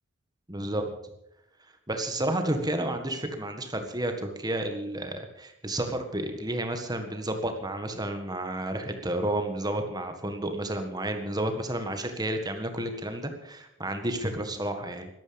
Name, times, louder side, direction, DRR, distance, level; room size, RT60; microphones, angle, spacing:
voice 1, 0.5-0.9 1.9-15.1, right 1 dB, 20° right, 6 dB, 1.7 m, -31 dB
12.5 x 12.0 x 7.1 m, 0.80 s
head